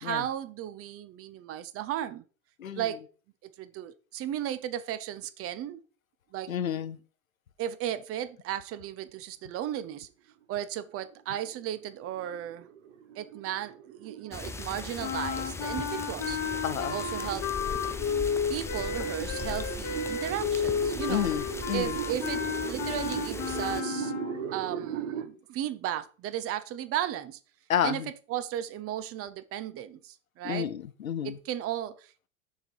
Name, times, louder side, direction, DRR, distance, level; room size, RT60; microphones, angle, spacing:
voice 1, 0.0-2.2 2.7-3.0 3.4-5.8 6.3-6.5 7.6-10.1 10.5-12.7 13.2-16.4 16.9-17.5 18.5-21.3 21.7-24.1 24.5-27.4 27.8-28.0 28.3-30.7 31.2-32.3, right 11 dB, 35° right, 0.9 m, -35 dB
voice 2, 6.5-7.0 16.6-17.0 21.1-22.0 27.7-28.1 30.4-31.4, left 9 dB, 85° left, 0.8 m, -30 dB
sound 1, 10.9-25.3, right 9 dB, 65° right, 1.4 m, -39 dB
sound 2, 14.3-23.8, left 4 dB, 5° left, 0.5 m, -39 dB
sound 3, 15.0-24.5, left 7 dB, 40° left, 1.3 m, -33 dB
6.6 x 5.3 x 4.6 m
hypercardioid pair, 90°, 40 cm